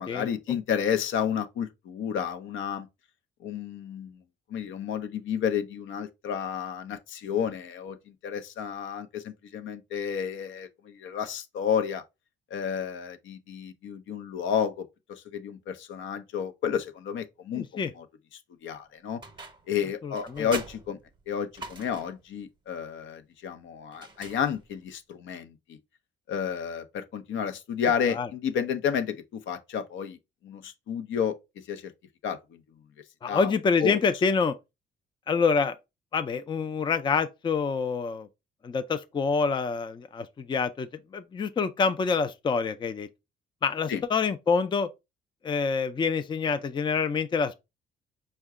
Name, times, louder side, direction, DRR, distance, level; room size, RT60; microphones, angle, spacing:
voice 1, 0.0-2.9 3.4-4.2 4.5-12.0 12.5-18.1 18.6-19.2 19.7-21.0 21.3-25.8 26.3-30.2 30.4-31.4 31.7-31.9 32.2-32.6 33.3-33.5 33.8-34.0 43.9-44.0, left 8 dB, 75° left, 0.6 m, -31 dB
voice 2, 17.5-17.9 20.0-20.5 28.1-28.3 33.2-34.5 35.3-35.8 36.1-38.3 38.6-43.1 43.6-44.9 45.4-47.5, left 5 dB, 25° left, 0.4 m, -27 dB
sound 1, 19.2-19.8 20.1-22.2 23.9-24.9, right 3 dB, 25° right, 0.8 m, -42 dB
4.7 x 2.2 x 3.5 m
cardioid pair, 90°, 20 cm